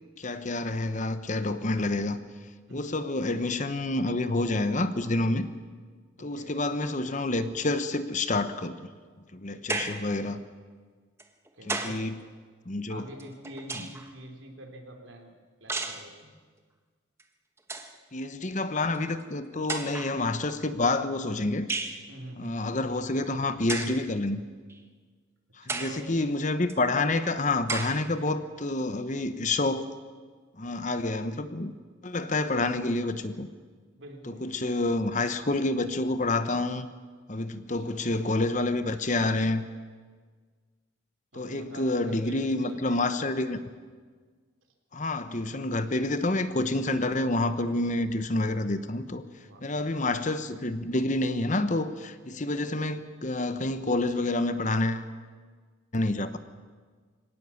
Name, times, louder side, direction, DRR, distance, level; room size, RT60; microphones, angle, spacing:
voice 1, 0.2-2.2 2.7-5.5 6.2-8.9 9.3-10.4 11.7-12.1 12.7-13.1 18.1-21.7 22.4-24.4 25.6-29.9 30.6-31.7 32.0-33.5 34.3-36.9 37.3-39.6 41.4-43.6 44.9-49.2 49.6-55.1 55.9-56.4, left 2 dB, 40° left, 11 dB, 1.0 m, -28 dB
voice 2, 6.2-6.8 9.8-10.1 11.5-12.0 12.9-15.3 15.6-16.3 18.5-18.6 22.1-22.6 25.6-26.2 34.0-34.4 37.8-38.0 41.3-43.5 49.4-49.7, right 1 dB, 75° right, 3 dB, 3.6 m, -46 dB
sound 1, 9.7-10.1 11.2-12.1 13.2-14.1 15.7-16.1 17.2-17.3 17.6-18.0 18.9-19.0 19.7-20.2 21.7-22.0 23.7-24.0 24.7-24.8 25.7-26.0 26.7-26.8 27.7-28.0, right 3 dB, 15° right, 1.2 m, -33 dB
24.0 x 18.0 x 7.2 m, 1.5 s
head